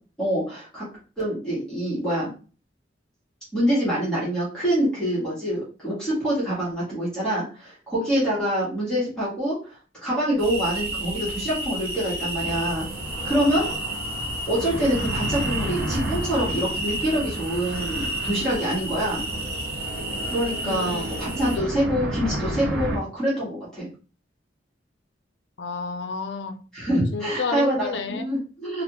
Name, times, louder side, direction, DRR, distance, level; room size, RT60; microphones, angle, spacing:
voice 1, 0.2-0.8 1.2-2.3 3.5-9.5 10.0-12.9 13.2-13.7 14.5-19.2 20.2-23.9 26.7-28.8, right 1 dB, 5° left, -9 dB, 1.5 m, -25 dB
sound 1, 10.4-21.6, right 1 dB, 35° right, 1.1 m, -32 dB
sound 2, 12.3-23.0, right 1 dB, 90° right, 0.8 m, -32 dB
voice 2, 20.6-21.1 25.6-26.6 27.1-28.3, left 4 dB, 70° left, 8 dB, 0.4 m, -30 dB
3.3 x 2.5 x 2.9 m, 0.36 s
head